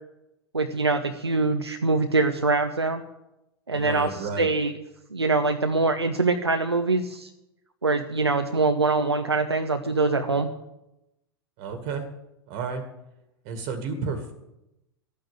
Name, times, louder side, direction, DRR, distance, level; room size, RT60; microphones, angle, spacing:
voice 1, 0.5-3.0 3.7-4.7 5.1-7.3 7.8-10.5, right 3 dB, 85° right, 6 dB, 0.9 m, -24 dB
voice 2, 3.7-4.5 11.6-12.1 12.5-12.8 13.4-14.3, right 5 dB, 45° right, 7 dB, 1.9 m, -31 dB
12.5 x 9.5 x 9.2 m, 0.90 s
figure-of-eight pair, 90°, 13 cm